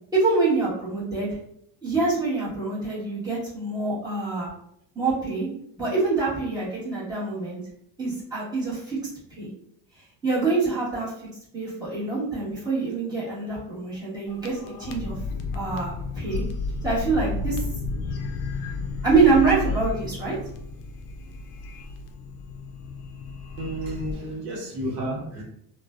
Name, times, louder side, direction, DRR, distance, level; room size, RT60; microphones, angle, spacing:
voice 1, 0.1-1.4 1.8-4.5 4.9-5.5 5.8-7.6 8.0-9.0 9.4-9.5 10.2-11.1 11.5-15.2 15.5-16.4 16.8-17.6 19.0-20.4, right 3 dB, 10° right, -10 dB, 1.2 m, -25 dB
sound 1, 14.3-24.1, left 3 dB, 60° left, 0.5 m, -32 dB
voice 2, 23.6-25.4, right 1 dB, 80° right, -3 dB, 1.0 m, -31 dB
2.4 x 2.3 x 2.3 m, 0.71 s
cardioid pair, 130°, 45 cm